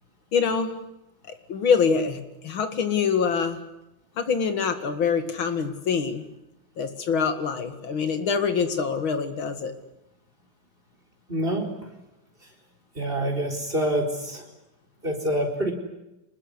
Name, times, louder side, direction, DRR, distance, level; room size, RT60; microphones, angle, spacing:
voice 1, 0.3-0.7 1.3-3.6 4.2-6.2 6.8-9.7, left 6 dB, 75° left, 8 dB, 2.8 m, -25 dB
voice 2, 11.3-11.7 13.0-14.4 15.0-15.7, right 1 dB, 25° right, 1 dB, 4.5 m, -26 dB
26.0 x 21.0 x 9.8 m, 0.95 s
omnidirectional pair, 2.2 m